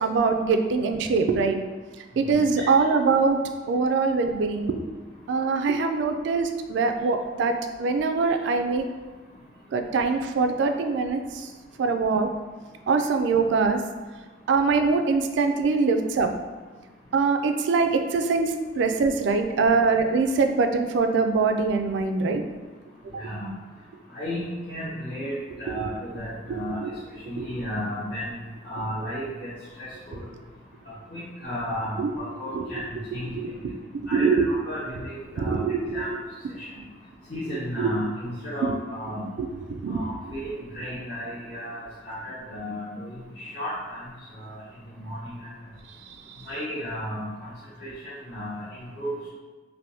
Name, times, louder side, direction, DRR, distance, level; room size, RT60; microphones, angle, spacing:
voice 1, 0.0-1.6 2.2-3.4 3.7-4.8 5.3-8.8 9.7-11.2 11.8-12.3 12.9-13.8 14.5-16.3 17.1-22.4 26.8-26.9 32.0-32.1 32.5-32.6 33.6-33.7 34.1-34.5 35.4-35.8 37.8-37.9 39.7-40.0, right 4 dB, 70° right, 6 dB, 0.3 m, -23 dB
voice 2, 2.3-2.7 23.1-23.5 24.1-26.8 27.2-29.5 29.8-30.3 31.1-33.3 34.1-35.6 35.9-36.1 36.6-36.7 37.3-39.3 39.9-44.0 44.3-44.6 44.9-45.5 46.4-47.5 47.8-49.3, equal, 55° left, -11 dB, 0.8 m, -34 dB
3.4 x 2.5 x 2.6 m, 1.3 s
head